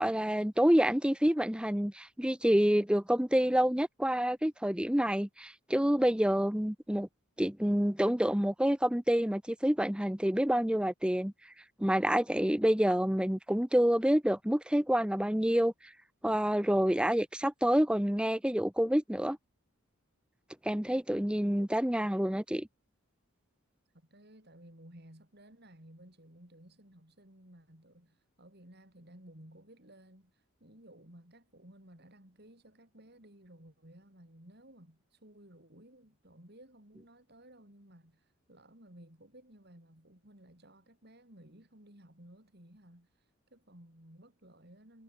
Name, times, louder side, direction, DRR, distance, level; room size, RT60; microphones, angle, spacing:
voice 1, 0.0-7.1 7.4-11.3 11.8-15.7 16.2-19.4 20.6-22.7, equal, 5° right, 0.7 m, -28 dB
voice 2, 23.9-45.0, right 1 dB, 50° right, 4.9 m, -56 dB
head